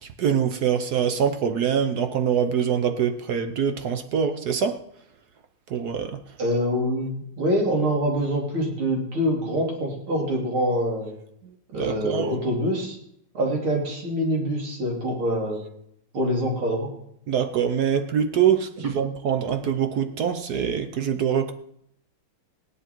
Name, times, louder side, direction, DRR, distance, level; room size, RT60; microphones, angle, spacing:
voice 1, 0.0-4.8 5.7-6.2 11.4-12.3 17.3-21.5, right 8 dB, 60° right, 1.1 m, -24 dB
voice 2, 6.4-11.1 11.7-13.0 13.3-15.6 16.1-16.9, equal, 85° right, 3.9 m, -25 dB
17.0 x 10.5 x 4.5 m
omnidirectional pair, 2.3 m